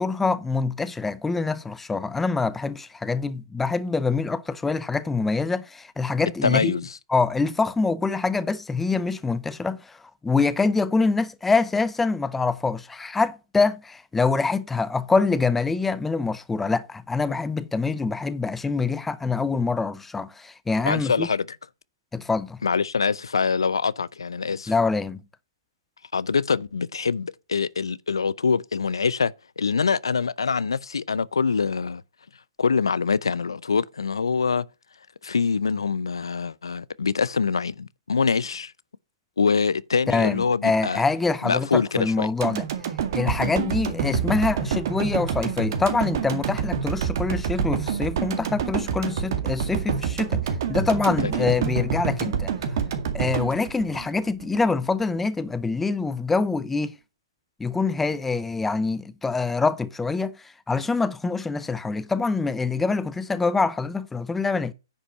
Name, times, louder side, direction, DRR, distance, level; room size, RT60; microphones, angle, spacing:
voice 1, 0.0-6.7 7.1-21.3 22.1-22.6 24.7-25.2 40.1-42.7 43.1-52.5 53.1-56.9 57.6-64.7, left 4 dB, 5° left, 0.6 m, -25 dB
voice 2, 6.4-6.9 20.8-21.5 22.6-24.7 26.1-32.0 32.6-34.6 35.2-38.7 39.4-41.0 41.4-42.3 43.4-43.5 51.2-51.5 52.1-52.2, left 5 dB, 85° left, 0.5 m, -24 dB
sound 1, 42.4-54.6 55.0-55.1, right 7 dB, 55° right, 2.0 m, -27 dB
10.0 x 5.2 x 5.6 m
hypercardioid pair, 135°, 2 cm